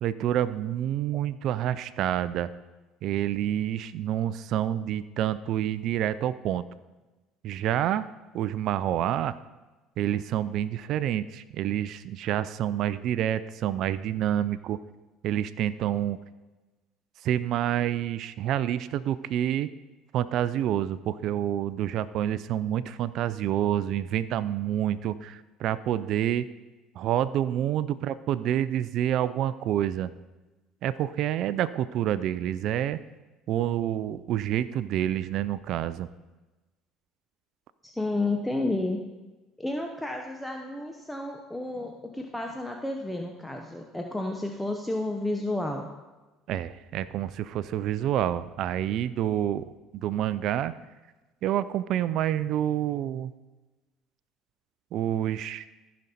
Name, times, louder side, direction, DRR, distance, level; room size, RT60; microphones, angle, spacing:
voice 1, 0.0-2.5 3.0-6.6 7.4-8.1 8.3-9.4 10.0-14.8 15.2-16.2 17.2-19.7 20.1-26.5 27.0-30.1 30.8-33.0 33.5-36.1 46.5-50.7 51.4-53.3 54.9-55.6, right 11 dB, 60° right, 14 dB, 0.3 m, -28 dB
voice 2, 37.8-39.0 39.6-45.9, left 2 dB, 5° left, 2 dB, 0.8 m, -31 dB
14.5 x 5.2 x 4.2 m, 1.2 s
supercardioid pair, 90°, 0 cm